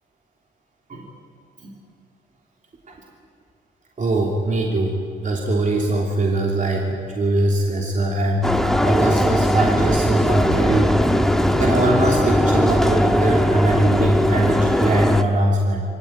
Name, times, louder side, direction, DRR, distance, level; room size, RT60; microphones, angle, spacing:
voice 1, 4.0-10.9 11.5-15.8, right 2 dB, 40° right, -1 dB, 3.2 m, -22 dB
sound 1, 8.4-15.2, left 1 dB, ahead, 1.5 m, -19 dB
24.0 x 18.0 x 9.4 m, 2.4 s
cardioid pair, 90°, 20 cm